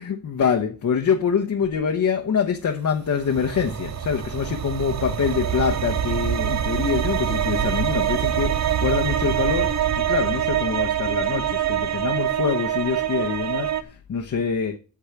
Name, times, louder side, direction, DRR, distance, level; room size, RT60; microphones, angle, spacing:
voice 1, 0.0-14.8, left 6 dB, 50° left, 0.9 m, -25 dB
sound 1, 3.1-13.8, right 10 dB, 45° right, 0.6 m, -25 dB
8.4 x 7.8 x 5.8 m
wide cardioid pair, 165°, 39 cm